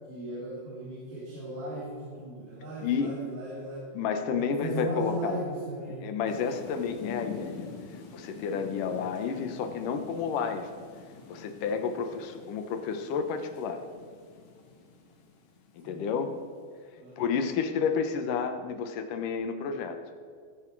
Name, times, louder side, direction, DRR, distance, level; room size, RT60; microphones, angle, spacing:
voice 1, 0.1-3.8 4.3-6.1 15.8-16.2 17.0-17.5, right 1 dB, 75° right, -8 dB, 5.4 m, -37 dB
voice 2, 2.8-3.1 3.9-5.4 6.0-7.6 8.1-10.7 11.3-13.8 15.7-16.3 17.2-20.0, left 6 dB, 85° left, 8 dB, 2.7 m, -30 dB
sound 1, 6.3-16.4, left 5 dB, 65° left, 2.7 m, -46 dB
21.5 x 9.9 x 4.7 m, 2.1 s
omnidirectional pair, 3.7 m